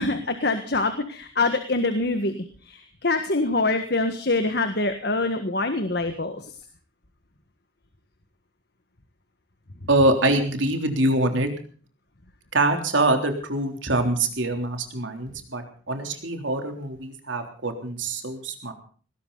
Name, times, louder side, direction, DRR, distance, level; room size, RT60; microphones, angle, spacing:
voice 1, 0.0-6.5, left 2 dB, 55° left, 8 dB, 1.7 m, -25 dB
voice 2, 9.9-11.5 12.5-18.7, right 2 dB, 70° right, 5 dB, 3.5 m, -24 dB
20.0 x 17.5 x 4.1 m, 0.43 s
head